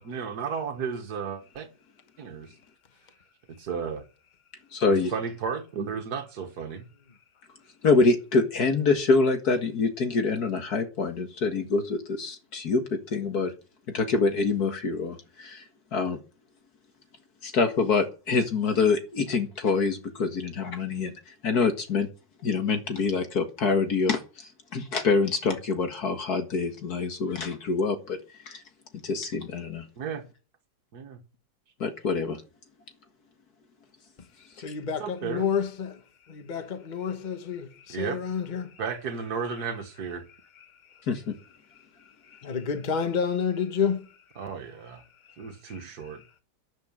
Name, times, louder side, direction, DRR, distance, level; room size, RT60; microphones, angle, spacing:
voice 1, 0.0-1.7 2.2-2.5 3.5-4.0 4.9-6.9 30.0-30.2 30.9-31.2 35.0-35.6 37.9-38.2 38.8-40.3 44.4-45.0 45.4-46.2, right 6 dB, 65° right, 2.0 m, -33 dB
voice 2, 4.7-5.1 7.8-13.5 13.9-15.6 15.9-16.2 17.4-22.1 22.4-28.2 28.5-28.6 29.0-29.9 31.8-32.4 41.1-41.3, left 4 dB, 60° left, 2.1 m, -26 dB
voice 3, 34.6-36.0 36.3-38.8 40.6-40.7 40.9-41.0 42.0-44.2 45.4-45.8, left 6 dB, 30° left, 1.3 m, -30 dB
11.5 x 10.5 x 7.3 m
omnidirectional pair, 1.9 m